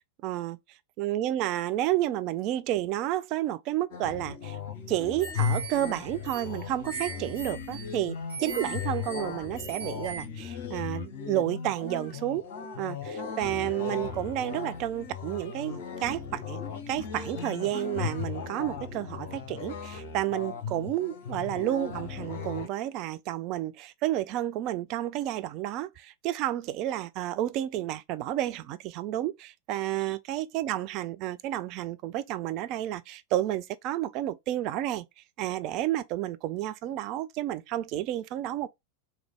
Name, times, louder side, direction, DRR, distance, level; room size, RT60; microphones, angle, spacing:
voice 1, 0.2-0.6 1.0-4.6 4.9-12.4 12.8-35.0 35.4-38.7, right 13 dB, 40° right, 0.3 m, -31 dB
sound 1, 3.9-22.7, left 6 dB, 50° left, 0.7 m, -37 dB
sound 2, 5.2-10.2, right 3 dB, 75° right, 1.2 m, -40 dB
3.1 x 2.3 x 3.5 m
figure-of-eight pair, 90°, 0 cm